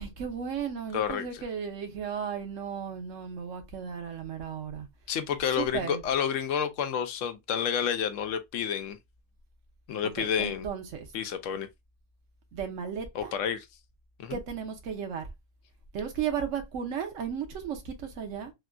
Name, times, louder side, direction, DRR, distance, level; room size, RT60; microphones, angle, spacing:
voice 1, 0.0-4.9 5.6-6.0 10.0-11.1 12.5-13.3 14.3-15.3 15.9-18.5, right 7 dB, 70° right, 1.1 m, -35 dB
voice 2, 0.9-1.3 5.1-9.0 9.9-10.7 11.1-11.7 13.1-13.6 14.2-14.4, left 8 dB, 75° left, 0.9 m, -29 dB
3.5 x 2.5 x 2.2 m
omnidirectional pair, 1.4 m